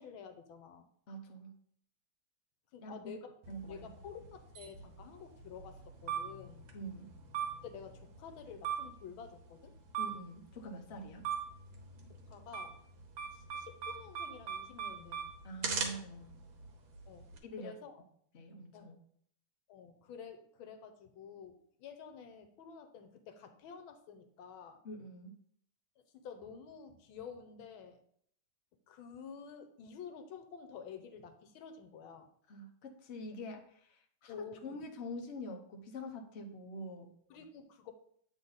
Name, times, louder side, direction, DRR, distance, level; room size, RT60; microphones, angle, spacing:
voice 1, 0.0-0.9 2.7-3.3 3.7-6.7 7.6-9.7 12.1-12.8 13.3-15.4 17.1-17.3 17.6-18.0 18.7-18.9 19.7-24.8 26.1-28.0 28.9-32.3 34.3-34.8 37.3-37.9, left 6 dB, 80° left, 8 dB, 1.5 m, -50 dB
voice 2, 1.1-1.6 2.8-2.9 3.5-3.9 6.7-7.1 10.0-11.3 15.4-16.3 17.4-17.8 18.3-19.0 24.8-25.4 32.5-37.1, equal, 50° left, 3 dB, 0.8 m, -45 dB
sound 1, 3.4-17.4, right 6 dB, 75° right, 1.7 m, -42 dB
8.1 x 3.9 x 3.9 m, 0.65 s
omnidirectional pair, 2.2 m